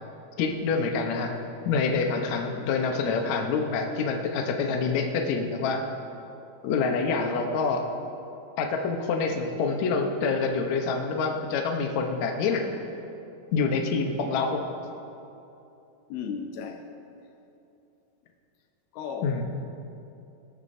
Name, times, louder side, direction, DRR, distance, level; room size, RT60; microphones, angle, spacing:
voice 1, 0.4-1.3 1.7-5.8 6.6-7.8 8.6-12.6 13.5-14.6 19.2-19.4, left 4 dB, 65° left, 2 dB, 1.9 m, -26 dB
voice 2, 16.1-16.9 18.9-19.4, left 6 dB, 90° left, 5 dB, 2.9 m, -35 dB
19.5 x 13.0 x 2.7 m, 2.8 s
omnidirectional pair, 4.3 m